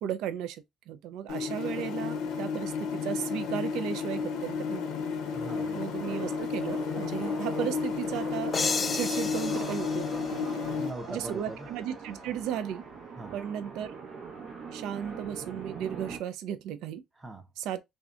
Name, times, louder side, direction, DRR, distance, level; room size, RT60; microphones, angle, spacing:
voice 1, 0.0-4.8 5.8-8.5 8.9-10.6 11.1-12.8 13.3-13.9 14.7-17.0 17.6-17.8, right 10 dB, 80° right, 0.3 m, -35 dB
sound 1, 1.3-10.9, left 5 dB, 85° left, 0.6 m, -32 dB
sound 2, 3.7-16.2, right 4 dB, 60° right, 1.0 m, -43 dB
voice 2, 5.3-5.8 10.5-11.7 13.2-13.4 17.2-17.5, right 1 dB, 15° right, 0.6 m, -41 dB
sound 3, 8.5-11.2, left 4 dB, 30° left, 0.3 m, -33 dB
2.6 x 2.1 x 2.4 m
cardioid pair, 120°, 0 cm